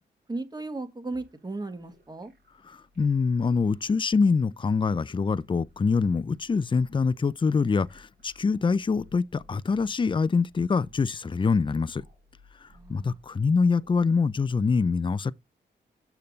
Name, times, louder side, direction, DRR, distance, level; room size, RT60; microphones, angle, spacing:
voice 1, 0.3-2.3 12.7-13.2, right 2 dB, 20° right, 1.7 m, -36 dB
sound 1, 1.1-14.7, equal, 70° right, 4.9 m, -59 dB
voice 2, 2.7-12.0 12.6-15.3, left 4 dB, 25° left, 0.5 m, -25 dB
7.0 x 6.5 x 3.9 m
cardioid pair, 70°, 19 cm